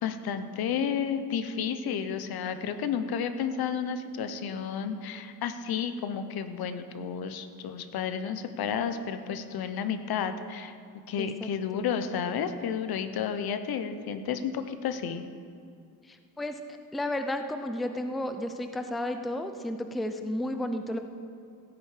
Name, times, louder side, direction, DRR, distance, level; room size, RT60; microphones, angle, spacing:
voice 1, 0.0-10.7 11.1-15.3, left 7 dB, 70° left, 10 dB, 0.9 m, -31 dB
voice 2, 11.2-11.8 16.1-16.6 16.9-21.0, left 1 dB, ahead, 7 dB, 0.4 m, -33 dB
15.5 x 8.8 x 5.0 m, 2.3 s
cardioid pair, 140°, 38 cm